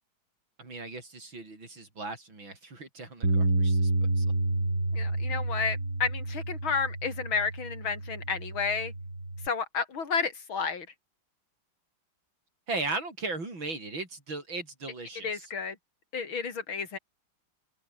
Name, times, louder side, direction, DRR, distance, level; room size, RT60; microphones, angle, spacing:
voice 1, 0.6-3.9 4.2-4.3 12.7-15.4, right 3 dB, 70° right, 6.9 m, -37 dB
Bass guitar, 3.2-9.5, right 2 dB, 50° right, 7.8 m, -29 dB
voice 2, 4.9-8.9 9.4-10.9 15.2-15.8 16.1-17.0, left 5 dB, 80° left, 3.7 m, -31 dB
open air
omnidirectional pair, 2.2 m